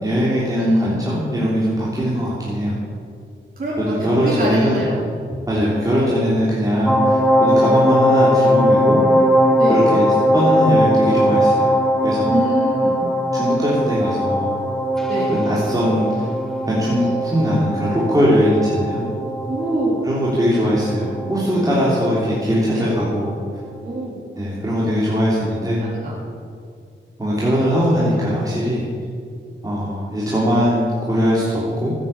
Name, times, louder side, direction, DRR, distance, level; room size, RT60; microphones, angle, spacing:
voice 1, 0.0-2.8 3.8-4.8 5.5-9.0 9.7-11.8 12.0-12.4 13.3-14.5 15.3-16.3 16.7-19.0 20.0-23.4 24.4-25.8 27.2-28.8 29.6-31.9, equal, 20° right, -7 dB, 3.3 m, -20 dB
voice 2, 0.5-1.0 3.6-3.7 4.2-5.0 9.6-9.9 12.3-13.1 15.1-15.3 19.5-20.0 21.6-21.8 22.7-22.9 23.8-24.2 25.8-26.1, right 1 dB, 45° right, -7 dB, 4.0 m, -24 dB
sound 1, 6.9-22.4 22.7-22.9, equal, ahead, 1.6 m, -19 dB
14.5 x 9.3 x 8.4 m, 2.2 s
wide cardioid pair, 125°, 20 cm